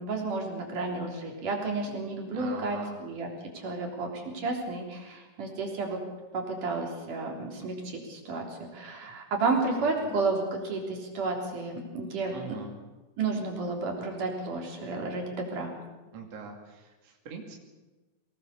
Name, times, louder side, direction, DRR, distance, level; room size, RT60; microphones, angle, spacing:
voice 1, 0.0-3.3 3.5-6.0 6.3-12.3 13.2-15.7, right 3 dB, 70° right, 1 dB, 5.1 m, -32 dB
voice 2, 2.3-3.0 9.0-9.2 9.8-10.1 12.3-12.7 16.1-17.5, right 4 dB, 50° right, 0 dB, 3.5 m, -43 dB
24.5 x 19.0 x 6.9 m, 1.2 s
omnidirectional pair, 3.9 m